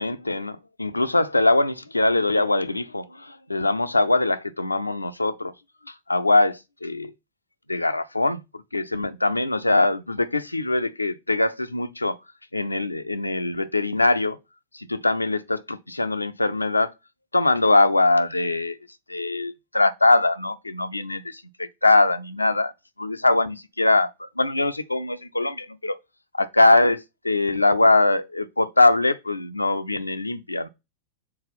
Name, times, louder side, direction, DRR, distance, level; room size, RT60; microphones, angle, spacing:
voice 1, 0.0-5.5 5.9-7.1 7.7-12.2 12.5-14.4 14.7-16.9 17.3-18.8 19.1-22.7 23.0-26.0 26.3-30.7, left 2 dB, 85° left, 0.5 m, -22 dB
7.5 x 4.1 x 4.3 m
figure-of-eight pair, 90°, 0 cm